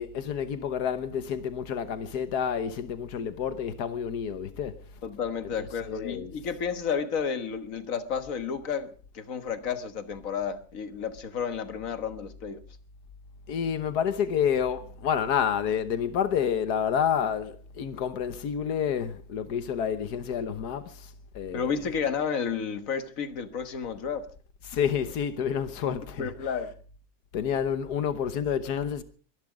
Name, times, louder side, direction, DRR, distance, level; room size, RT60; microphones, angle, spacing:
voice 1, 0.0-4.7 5.8-6.3 13.5-21.1 21.3-21.7 24.7-26.3 27.3-29.0, left 8 dB, 85° left, 1.6 m, -29 dB
voice 2, 5.0-12.6 21.5-24.3 25.8-26.7, left 6 dB, 60° left, 1.7 m, -32 dB
23.0 x 11.5 x 5.0 m
omnidirectional pair, 1.7 m